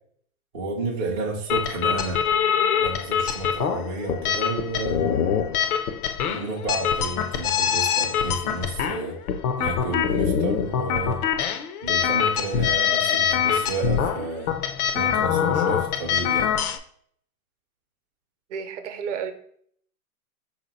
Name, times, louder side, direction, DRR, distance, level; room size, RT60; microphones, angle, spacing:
voice 1, 0.5-2.2 2.8-5.1 6.3-9.2 9.6-11.2 11.8-14.5 14.9-16.6, right 2 dB, 20° right, -3 dB, 0.3 m, -31 dB
sound 1, 1.5-16.8, left 8 dB, 75° left, 0.6 m, -24 dB
voice 2, 18.5-19.3, right 7 dB, 55° right, 8 dB, 0.7 m, -31 dB
4.0 x 2.8 x 4.0 m, 0.63 s
hypercardioid pair, 140°, 44 cm